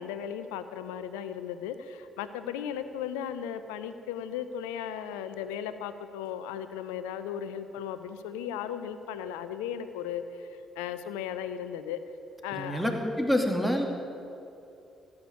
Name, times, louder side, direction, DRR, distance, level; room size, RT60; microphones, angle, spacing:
voice 1, 0.0-12.0 12.4-12.8, left 9 dB, 70° left, 11 dB, 0.7 m, -36 dB
voice 2, 12.5-13.9, equal, ahead, 2 dB, 2.5 m, -27 dB
16.5 x 8.8 x 8.9 m, 2.7 s
figure-of-eight pair, 40°, 0 cm